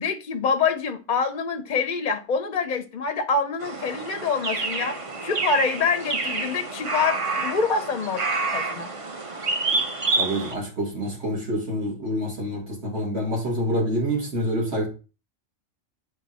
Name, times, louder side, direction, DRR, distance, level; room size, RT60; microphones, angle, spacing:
voice 1, 0.0-8.2 8.5-8.9, left 5 dB, 50° left, 0.6 m, -26 dB
sound 1, 3.6-10.6, right 3 dB, 35° right, 0.6 m, -28 dB
voice 2, 10.2-14.9, equal, 60° right, 2.3 m, -27 dB
8.6 x 3.4 x 4.1 m
omnidirectional pair, 1.2 m